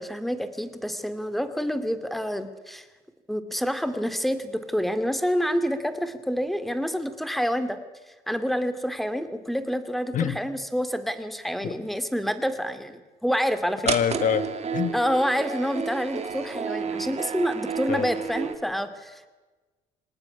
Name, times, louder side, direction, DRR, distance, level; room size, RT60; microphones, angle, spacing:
voice 1, 0.0-2.9 3.3-7.8 8.3-13.9 14.9-19.3, equal, ahead, 10 dB, 2.4 m, -28 dB
voice 2, 13.8-14.9 17.9-18.1, left 8 dB, 50° left, 14 dB, 1.5 m, -25 dB
sound 1, 13.9-18.5, right 6 dB, 40° right, 2.6 m, -31 dB
25.5 x 18.5 x 9.9 m, 1.2 s
cardioid pair, 110°, 17 cm